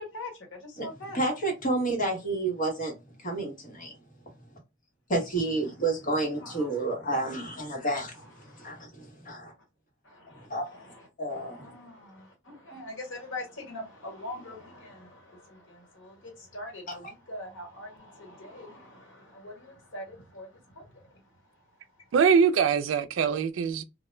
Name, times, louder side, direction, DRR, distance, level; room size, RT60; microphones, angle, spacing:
voice 1, 0.0-1.2 6.4-7.6 8.4-8.8 9.4-9.5 10.0-21.4 21.9-22.1, left 1 dB, 70° left, 1.2 m, -44 dB
voice 2, 1.1-4.0 5.1-8.2 8.6-9.5 10.3-11.7 16.9-17.0, right 2 dB, 45° left, 0.9 m, -30 dB
voice 3, 22.1-23.8, right 6 dB, 80° right, 0.3 m, -23 dB
2.2 x 2.1 x 3.0 m
head